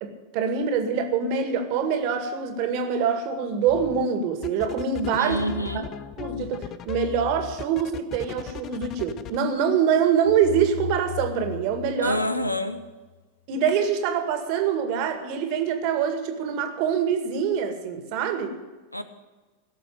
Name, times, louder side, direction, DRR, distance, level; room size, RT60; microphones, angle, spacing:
voice 1, 0.0-5.4 6.2-12.2 13.5-18.6, right 7 dB, 45° right, 6 dB, 2.1 m, -25 dB
sound 1, 3.7-4.0 4.4-9.4, left 10 dB, 30° left, 0.7 m, -37 dB
voice 2, 5.2-5.9 12.0-12.9 18.9-19.0, left 1 dB, 85° left, 11 dB, 1.0 m, -27 dB
sound 2, 10.2-13.1, left 8 dB, 60° left, 1.2 m, -37 dB
17.0 x 6.8 x 9.0 m, 1.3 s
figure-of-eight pair, 90°, 0 cm